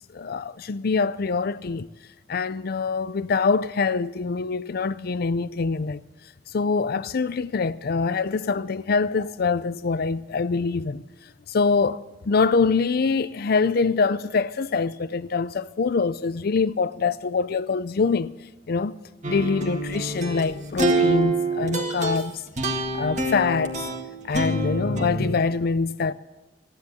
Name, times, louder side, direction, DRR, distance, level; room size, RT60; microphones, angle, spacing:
voice 1, 0.1-1.9 2.3-6.0 6.5-11.0 11.5-18.3 18.7-18.9 19.3-22.4 22.9-23.8 24.2-26.1, left 4 dB, 55° left, 0.5 m, -24 dB
sound 1, 19.2-25.4, right 2 dB, 40° right, 1.8 m, -26 dB
15.0 x 10.5 x 8.0 m
head